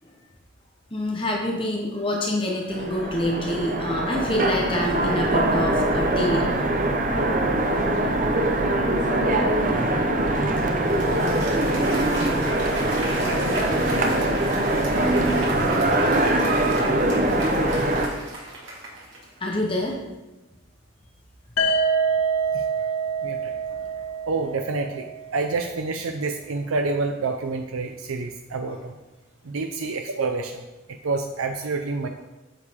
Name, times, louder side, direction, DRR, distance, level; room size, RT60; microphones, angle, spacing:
voice 1, 0.9-6.5 19.4-19.9 22.2-22.3 28.7-28.8, left 1 dB, 25° left, 0 dB, 1.0 m, -26 dB
Train, 2.7-18.1, right 1 dB, 40° right, 0.8 m, -22 dB
Applause, 10.5-19.4, right 2 dB, 65° right, 2.2 m, -35 dB
sound 1, 21.6-25.4, right 4 dB, 85° left, 1.0 m, -26 dB
voice 2, 23.2-23.5 24.3-25.1 25.3-28.9 29.4-30.6 31.0-32.1, right 3 dB, 85° right, 5 dB, 0.6 m, -28 dB
9.3 x 6.5 x 3.6 m, 1.0 s
head